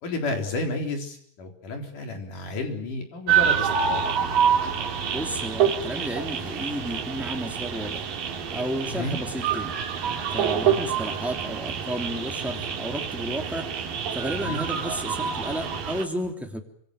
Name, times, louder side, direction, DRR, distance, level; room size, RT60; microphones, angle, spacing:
voice 1, 0.0-4.1 8.9-9.2 10.5-10.8 14.4-14.6, left 2 dB, 50° left, 4 dB, 5.3 m, -31 dB
sound 1, 3.3-16.0, right 7 dB, 60° right, 4.0 m, -27 dB
voice 2, 5.1-8.0 8.5-9.7 10.3-13.7 14.1-16.6, right 1 dB, ahead, 3 dB, 2.0 m, -32 dB
26.5 x 25.5 x 6.7 m, 0.68 s
omnidirectional pair, 5.0 m